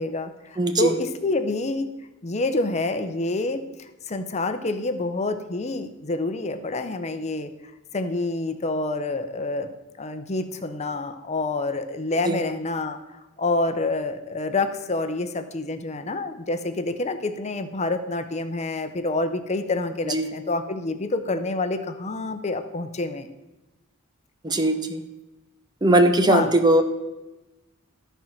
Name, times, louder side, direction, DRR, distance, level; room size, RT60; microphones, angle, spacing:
voice 1, 0.0-1.9 2.2-7.5 7.9-23.3 26.3-26.5, left 2 dB, 30° left, 9 dB, 0.7 m, -27 dB
voice 2, 0.6-1.0 12.2-12.4 20.1-20.3 24.4-25.0 25.8-26.8, right 1 dB, 20° right, 8 dB, 0.7 m, -19 dB
13.0 x 4.5 x 5.8 m, 1.0 s
head